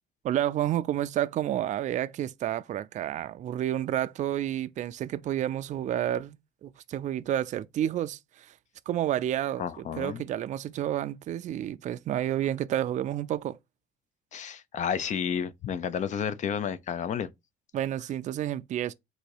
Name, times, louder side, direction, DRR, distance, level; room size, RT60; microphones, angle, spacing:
voice 1, 0.2-8.5 8.9-13.6 17.7-18.9, right 11 dB, 45° right, 0.4 m, -30 dB
voice 2, 9.6-10.2 14.3-17.3, left 7 dB, 45° left, 0.5 m, -31 dB
4.0 x 2.6 x 4.7 m
cardioid pair, 110°, 17 cm